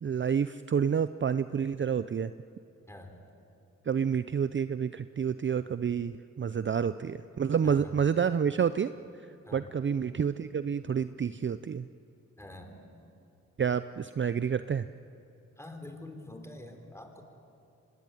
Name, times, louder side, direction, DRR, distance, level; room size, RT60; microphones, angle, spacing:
voice 1, 0.0-2.3 3.9-8.9 9.5-11.9 13.6-14.9, right 7 dB, 40° right, 13 dB, 0.6 m, -29 dB
voice 2, 2.9-3.2 7.6-7.9 9.5-9.6 12.4-12.8 15.6-17.2, left 1 dB, 10° left, 5 dB, 4.1 m, -46 dB
25.0 x 19.5 x 9.2 m, 2.7 s
cardioid pair, 60°, 31 cm